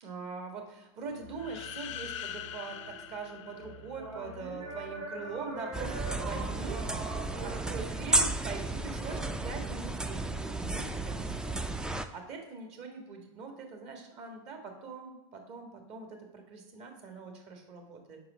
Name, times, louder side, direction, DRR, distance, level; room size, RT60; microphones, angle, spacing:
voice 1, 0.0-18.2, right 4 dB, 45° right, 4 dB, 1.6 m, -43 dB
sound 1, 1.0-7.6, right 2 dB, 85° right, 2.3 m, -43 dB
sound 2, 1.3-4.3, left 10 dB, 75° left, 0.5 m, -43 dB
sound 3, 5.7-12.1, right 2 dB, 5° right, 0.3 m, -33 dB
5.0 x 4.7 x 6.1 m, 0.92 s
hypercardioid pair, 110°, 16 cm